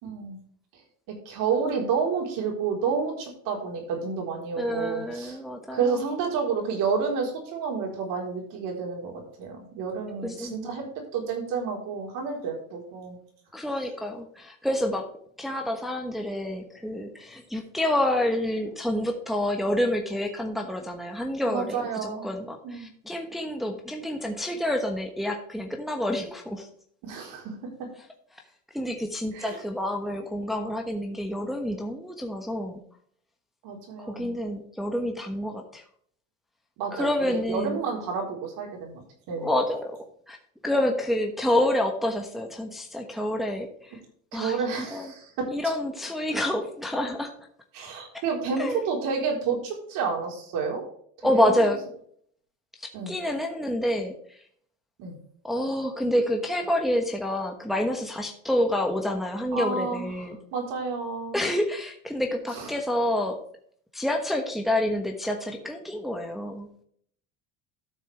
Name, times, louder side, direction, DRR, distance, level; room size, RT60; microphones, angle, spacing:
voice 1, 0.0-0.4 1.3-5.4 5.7-10.8 11.1-13.2 21.5-22.3 22.6-22.9 27.0-27.6 29.3-29.6 33.6-34.4 36.8-39.0 39.3-39.5 44.3-45.3 47.7-50.8 51.2-51.5 52.9-53.2 55.0-55.2 59.5-61.4 62.5-62.7, right 5 dB, 70° right, 1 dB, 4.0 m, -30 dB
voice 2, 4.6-6.0 10.2-10.7 13.5-15.1 15.4-26.7 28.7-32.8 34.0-35.8 36.9-37.8 39.4-40.0 40.3-40.4 40.6-44.0 44.3-44.6 44.9-45.1 45.5-47.3 48.6-48.8 51.2-51.8 52.8-54.1 55.4-60.4 61.3-63.4 63.9-66.7, left 1 dB, ahead, 2 dB, 1.1 m, -28 dB
12.5 x 6.6 x 3.4 m, 0.63 s
cardioid pair, 120°, 34 cm